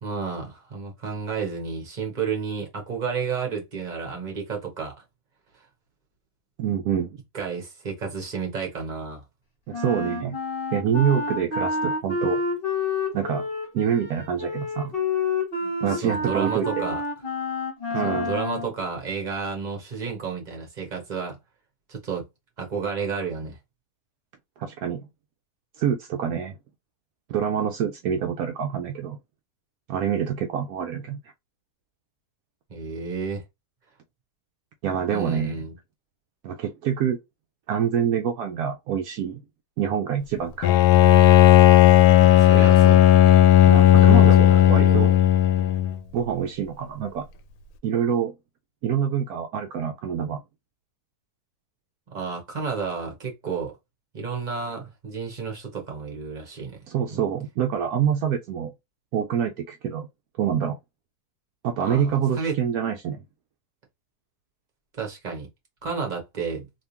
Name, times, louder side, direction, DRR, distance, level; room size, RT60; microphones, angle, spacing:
voice 1, 0.0-4.9 7.3-9.2 15.6-17.0 18.0-21.4 21.9-22.3 22.6-23.6 32.7-33.4 35.1-35.7 42.2-43.0 43.8-45.2 52.1-53.7 54.1-56.8 57.1-57.2 61.8-62.6 65.0-65.5 65.8-66.7, right 5 dB, 30° right, 1.4 m, -31 dB
voice 2, 6.6-7.2 9.7-10.4 10.7-12.4 13.1-13.4 13.7-15.0 15.8-16.9 17.9-18.3 24.6-25.0 25.8-26.5 27.3-29.2 29.9-31.2 34.8-35.6 36.4-37.2 37.7-39.4 39.8-40.7 43.7-45.1 46.1-47.3 47.8-48.3 48.8-50.4 56.9-58.7 59.1-60.1 60.4-60.8 61.6-63.2, right 8 dB, 75° right, 1.0 m, -26 dB
Wind instrument woodwind instrument, 9.7-18.7, left 3 dB, 35° left, 1.5 m, -29 dB
Bowed string instrument, 40.6-46.0, left 12 dB, 75° left, 1.0 m, -14 dB
3.5 x 2.9 x 2.8 m
omnidirectional pair, 1.7 m